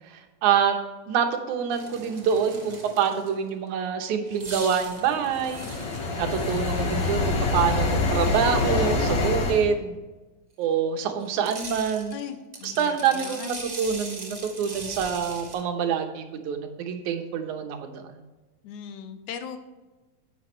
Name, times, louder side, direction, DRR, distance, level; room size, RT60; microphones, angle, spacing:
voice 1, 0.4-0.8 1.1-5.7 6.2-10.0 10.6-12.2 12.6-18.2, right 7 dB, 80° right, 5 dB, 2.5 m, -26 dB
sound 1, 1.7-3.5 4.2-9.1 11.2-15.6, right 2 dB, 55° right, 0.4 m, -41 dB
sound 2, 5.0-9.7, left 3 dB, 50° left, 1.5 m, -26 dB
voice 2, 12.1-13.7 18.6-19.6, left 8 dB, 85° left, 9 dB, 2.3 m, -38 dB
10.5 x 8.7 x 3.2 m, 1.2 s
omnidirectional pair, 3.4 m